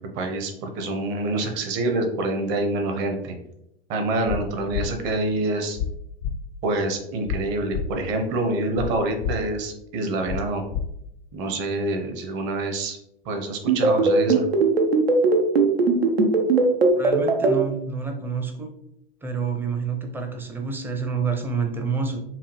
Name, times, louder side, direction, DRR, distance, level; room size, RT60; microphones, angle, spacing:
voice 1, 0.1-3.4 3.9-5.8 6.6-10.6 11.3-13.0 13.2-14.5, right 2 dB, 35° right, 5 dB, 0.9 m, -26 dB
sound 1, 4.3-4.4 4.7-4.9 5.8-5.9 6.2-6.3 7.3-7.4 7.7-7.9 8.8-8.9 9.2-9.3 10.3-10.4 10.7-10.8, left 8 dB, 55° left, 0.5 m, -27 dB
sound 2, 13.7-17.5, right 4 dB, 80° right, 0.8 m, -18 dB
voice 2, 16.9-18.7 19.2-22.2, right 5 dB, 5° right, 4 dB, 0.5 m, -28 dB
5.7 x 2.3 x 3.2 m, 0.77 s
figure-of-eight pair, 100°, 30 cm